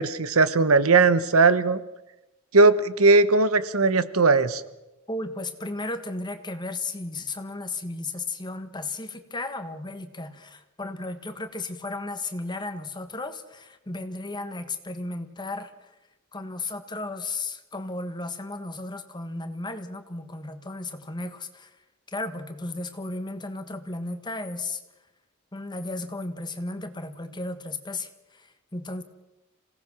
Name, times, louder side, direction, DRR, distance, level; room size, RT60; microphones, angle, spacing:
voice 1, 0.0-1.8 2.5-4.6, right 3 dB, 90° right, 14 dB, 1.1 m, -19 dB
voice 2, 5.1-15.9 16.3-21.7 22.1-24.8 25.5-29.0, left 2 dB, 20° left, 8 dB, 1.5 m, -34 dB
27.0 x 17.5 x 6.2 m, 0.99 s
head